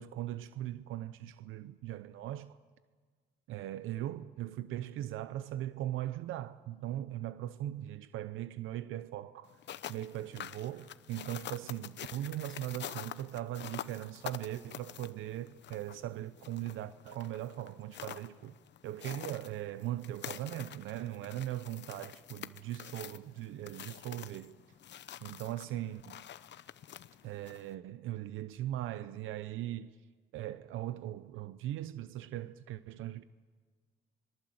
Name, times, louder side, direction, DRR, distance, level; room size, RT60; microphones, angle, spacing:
voice 1, 0.0-2.6 3.5-9.5 9.9-18.5 18.8-24.5 25.2-26.2 27.2-30.0 30.3-33.2, right 13 dB, 85° right, 0.7 m, -39 dB
sound 1, 9.5-27.7, left 10 dB, 65° left, 0.9 m, -47 dB
25.5 x 22.5 x 7.9 m
cardioid pair, 90°, 20 cm